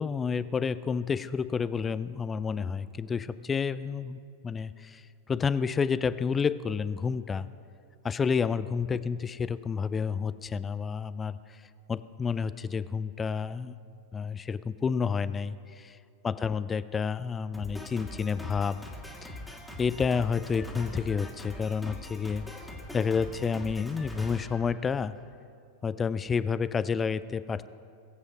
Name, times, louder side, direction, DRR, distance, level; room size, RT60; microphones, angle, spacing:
voice 1, 0.0-7.5 8.0-11.6 11.9-13.7 14.1-15.6 16.2-18.8 19.2-19.4 19.8-22.4 22.9-25.1 25.8-27.7, left 6 dB, 20° left, 15 dB, 0.3 m, -30 dB
Drum kit, 17.5-25.3, left 1 dB, ahead, 1.9 m, -43 dB
21.0 x 8.2 x 4.7 m, 2.4 s
figure-of-eight pair, 90°, 0 cm